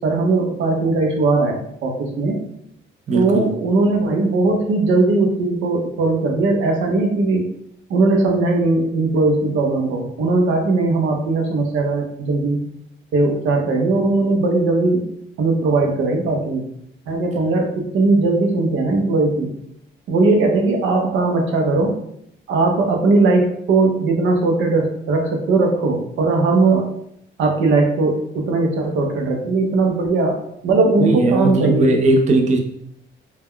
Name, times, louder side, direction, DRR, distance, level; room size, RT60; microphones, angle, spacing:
voice 1, 0.0-2.4 3.1-7.5 7.9-12.6 13.1-15.1 15.4-16.6 17.1-19.5 20.1-22.0 22.5-26.9 27.4-31.9, right 3 dB, 80° right, 2 dB, 0.7 m, -19 dB
voice 2, 3.1-3.5 31.0-32.6, right 2 dB, 35° right, 3 dB, 0.5 m, -18 dB
2.2 x 2.1 x 3.5 m, 0.72 s
cardioid pair, 90°, 20 cm